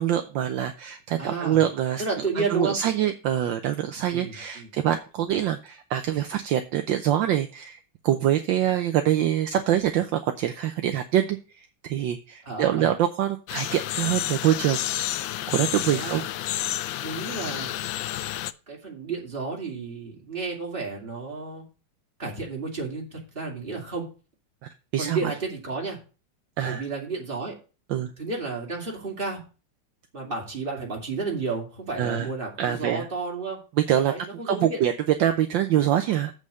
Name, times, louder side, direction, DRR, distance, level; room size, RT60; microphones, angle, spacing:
voice 1, 0.0-2.0 2.5-15.1 15.5-16.2 24.9-25.3 26.6-26.8 27.9-28.1 32.0-32.3 32.6-33.1 33.9-34.1 34.4-34.9 35.2-36.3, right 11 dB, 70° right, 7 dB, 1.3 m, -25 dB
voice 2, 1.2-1.6 2.0-2.8 4.1-4.7 12.5-12.9 15.9-16.3 17.0-17.7 18.7-21.6 22.2-24.1 25.0-26.0 26.6-27.5 28.2-29.4 30.1-33.6 34.0-34.8, right 4 dB, 25° right, -1 dB, 2.7 m, -32 dB
sound 1, 13.5-18.5, left 13 dB, 75° left, 1.2 m, -30 dB
7.8 x 5.5 x 6.3 m, 0.34 s
omnidirectional pair, 2.3 m